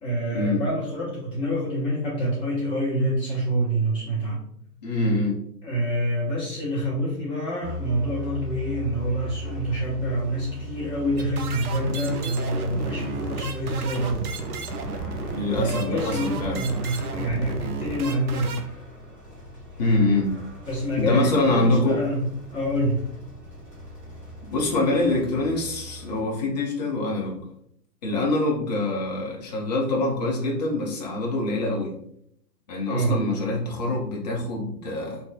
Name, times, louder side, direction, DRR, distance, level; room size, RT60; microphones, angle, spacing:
voice 1, 0.0-4.4 5.6-14.3 15.5-18.7 20.6-23.0 32.9-33.1, right 1 dB, 10° left, -9 dB, 1.0 m, -27 dB
voice 2, 4.8-5.4 15.3-16.6 19.8-20.3 21.0-22.0 24.5-27.4 28.0-31.9 32.7-35.2, left 2 dB, 30° left, -2 dB, 0.4 m, -24 dB
sound 1, 7.6-26.2, equal, 10° right, 1.1 m, -39 dB
sound 2, 11.2-18.6, right 4 dB, 65° right, 0.6 m, -33 dB
3.2 x 2.4 x 2.2 m, 0.70 s
figure-of-eight pair, 120°, 50 cm